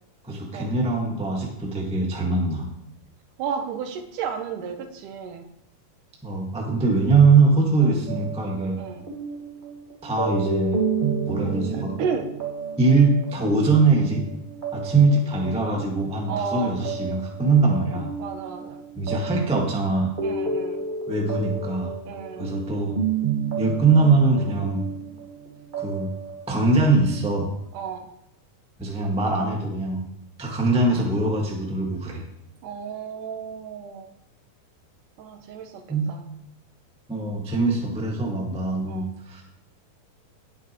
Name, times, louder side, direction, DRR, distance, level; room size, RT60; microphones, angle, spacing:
voice 1, 0.2-2.6 6.2-8.8 10.0-10.8 11.3-11.9 12.8-14.2 14.7-18.1 18.9-20.1 21.1-21.9 22.4-23.0 23.6-24.8 25.8-26.1 26.5-27.5 28.8-30.1 30.4-32.2 35.9-36.1 37.1-39.4, right 3 dB, 5° right, -1 dB, 0.4 m, -22 dB
voice 2, 3.4-5.5 7.8-8.0 8.8-9.0 11.7-12.3 16.3-16.8 18.2-18.8 20.2-20.8 22.1-22.5 27.7-28.1 32.6-34.1 35.2-35.8 36.1-36.3 38.8-39.1, right 6 dB, 75° right, 6 dB, 2.4 m, -32 dB
sound 1, 8.1-27.3, right 5 dB, 30° right, 0.8 m, -31 dB
18.0 x 6.1 x 3.0 m, 0.80 s
omnidirectional pair, 3.7 m